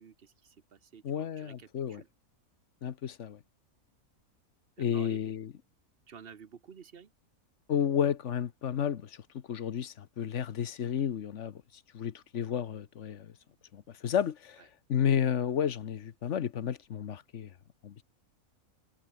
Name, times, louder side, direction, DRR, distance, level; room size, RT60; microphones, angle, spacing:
voice 1, 0.0-2.1 4.8-5.2 6.1-7.1, right 7 dB, 45° right, 1.3 m, -52 dB
voice 2, 1.0-2.0 2.8-3.4 4.8-5.5 7.7-11.6 11.9-13.3 13.7-14.6 14.9-17.5 17.8-18.0, left 8 dB, 55° left, 1.2 m, -32 dB
omnidirectional pair, 1.6 m